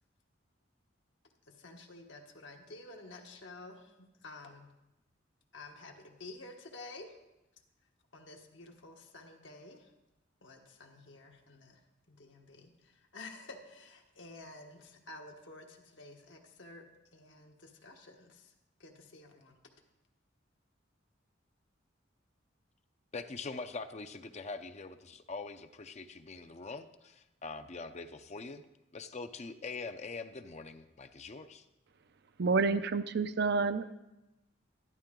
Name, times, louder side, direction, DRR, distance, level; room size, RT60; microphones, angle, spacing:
voice 1, 1.5-4.7 5.5-7.2 8.1-9.9 10.4-11.8 12.1-16.8 17.1-18.5 18.8-19.6, left 2 dB, 75° left, 2 dB, 1.4 m, -51 dB
voice 2, 23.1-28.6 28.9-31.6, left 4 dB, 35° left, 8 dB, 0.6 m, -43 dB
voice 3, 32.4-33.9, right 4 dB, 60° right, 12 dB, 0.6 m, -29 dB
12.0 x 11.5 x 3.8 m, 0.97 s
head